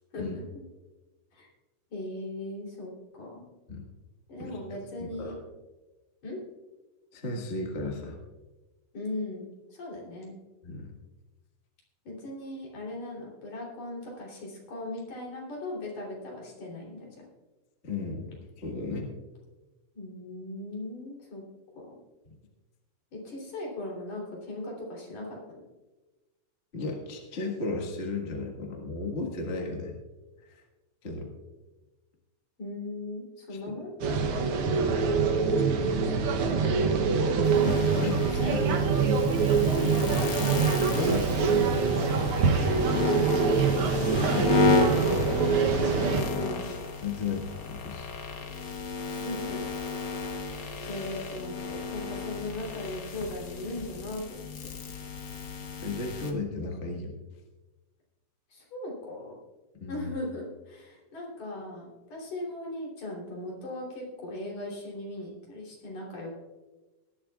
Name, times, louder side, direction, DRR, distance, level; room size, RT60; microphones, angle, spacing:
voice 1, 0.1-0.6 1.3-1.5 1.9-3.4 4.3-5.3 6.2-6.4 8.9-10.3 12.0-17.2 19.9-21.4 21.8-21.9 23.1-25.4 32.6-33.9 35.9-36.9 37.9-38.7 40.1-40.3 43.1-43.8 46.0-46.7 49.1-49.6 50.4-54.7 58.5-59.3 59.9-66.3, left 1 dB, 60° left, -4 dB, 4.5 m, -38 dB
voice 2, 5.0-5.3 7.1-8.2 10.6-10.9 17.8-19.1 26.7-30.0 30.5-30.6 31.0-31.3 33.5-33.6 34.0-34.3 34.7-35.2 37.6-38.1 38.7-39.2 40.8-41.7 44.1-45.2 47.0-48.1 55.8-57.1 59.8-60.1, left 3 dB, 30° left, 0 dB, 1.2 m, -34 dB
sound 1, 34.0-46.2, right 5 dB, 90° right, 1.2 m, -25 dB
sound 2, 37.4-56.3, left 3 dB, 85° left, 0.9 m, -32 dB
19.5 x 11.5 x 2.4 m, 1.2 s
omnidirectional pair, 3.8 m